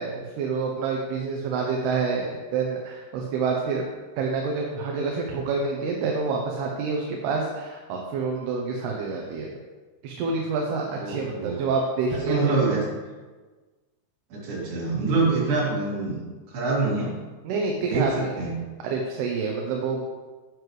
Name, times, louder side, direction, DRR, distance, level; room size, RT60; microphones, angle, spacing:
voice 1, 0.0-3.8 4.2-9.5 10.0-12.6 17.4-18.3 18.8-20.0, right 4 dB, 75° right, 0 dB, 2.7 m, -27 dB
voice 2, 11.0-11.6 12.3-12.8 14.3-16.2 16.5-17.1 17.9-18.0 18.4-18.5, right 3 dB, 55° right, -6 dB, 4.5 m, -25 dB
9.6 x 9.5 x 3.2 m, 1.3 s
omnidirectional pair, 5.0 m